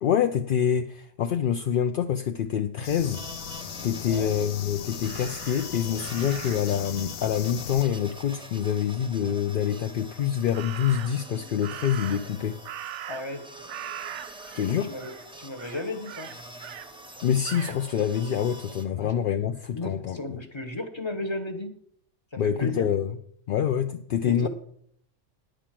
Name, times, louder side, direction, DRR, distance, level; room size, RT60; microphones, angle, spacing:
voice 1, 0.0-3.2 3.8-12.6 14.5-14.9 17.2-20.4 22.4-23.2 23.5-24.5, left 9 dB, 60° left, 0.6 m, -26 dB
sound 1, 2.8-7.8, left 10 dB, 85° left, 1.0 m, -38 dB
sound 2, 3.0-18.8, right 1 dB, 5° right, 0.8 m, -45 dB
voice 2, 4.0-4.3 13.1-13.4 14.8-16.3 19.0-19.1 19.7-21.7 22.3-22.9 24.2-24.5, left 2 dB, 25° left, 1.1 m, -34 dB
Crow, 5.0-6.8 10.5-11.3 11.6-13.4 13.7-14.7 15.0-15.3 15.6-16.9 17.4-17.8, right 11 dB, 70° right, 0.8 m, -40 dB
10.0 x 5.1 x 7.5 m
omnidirectional pair, 1.3 m